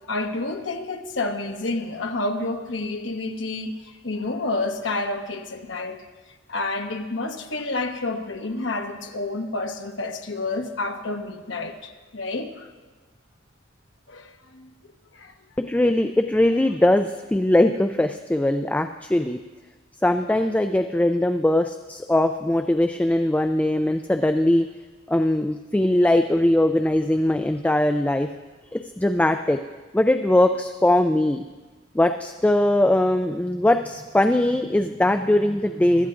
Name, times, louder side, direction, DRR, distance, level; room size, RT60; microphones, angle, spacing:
voice 1, 0.1-6.0 6.5-12.7 14.1-14.7 15.1-15.3, left 2 dB, 75° left, 4 dB, 1.1 m, -29 dB
voice 2, 15.6-19.4 20.0-24.7 25.1-28.3 28.7-29.6 29.9-31.4 31.9-36.1, left 1 dB, 10° left, 8 dB, 0.3 m, -21 dB
23.5 x 13.0 x 2.5 m, 1.3 s
head